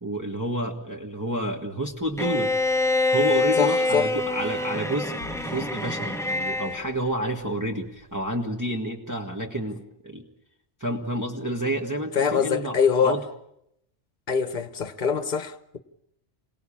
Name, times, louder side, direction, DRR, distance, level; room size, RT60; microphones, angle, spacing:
voice 1, 0.0-2.5 3.1-10.2 10.8-12.8 13.0-13.2, right 1 dB, 15° right, 1.6 m, -29 dB
Bowed string instrument, 2.2-6.8, left 2 dB, 5° left, 0.8 m, -25 dB
voice 2, 3.6-4.1 12.1-13.2 14.3-15.8, left 6 dB, 45° left, 1.3 m, -24 dB
sound 1, 4.4-8.1, left 1 dB, 90° right, 5.2 m, -50 dB
27.5 x 18.0 x 8.7 m
omnidirectional pair, 1.2 m